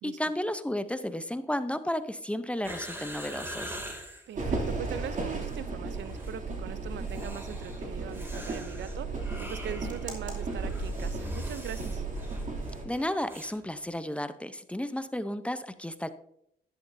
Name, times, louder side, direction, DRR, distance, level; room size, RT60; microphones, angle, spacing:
voice 1, 0.0-3.8 12.8-16.1, left 1 dB, 5° left, 11 dB, 0.7 m, -33 dB
sound 1, 2.6-4.3 5.1-5.7 6.0-6.4 7.0-13.6 13.8-13.9, equal, 10° right, 2.6 m, -43 dB
voice 2, 4.3-12.1, right 10 dB, 65° right, 15 dB, 0.6 m, -41 dB
sound 2, 4.4-12.8, right 3 dB, 40° right, 2.8 m, -35 dB
11.0 x 11.0 x 2.7 m, 0.72 s
cardioid pair, 90°, 20 cm